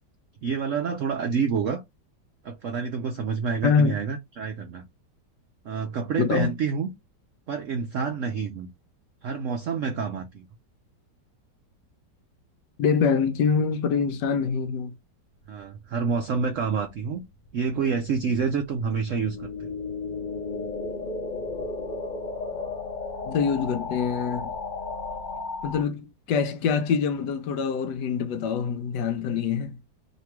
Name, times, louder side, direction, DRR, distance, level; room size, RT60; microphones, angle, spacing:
voice 1, 0.4-1.8 2.4-4.8 5.6-6.9 7.5-8.7 9.2-10.4 15.5-17.2 17.5-19.7, right 5 dB, 75° right, 0.7 m, -28 dB
voice 2, 3.6-4.0 6.2-6.5 12.8-14.9 23.3-24.5 25.6-29.8, left 6 dB, 75° left, 1.2 m, -25 dB
sound 1, 16.9-25.8, left 4 dB, 55° left, 0.5 m, -34 dB
3.1 x 2.9 x 4.4 m
omnidirectional pair, 1.9 m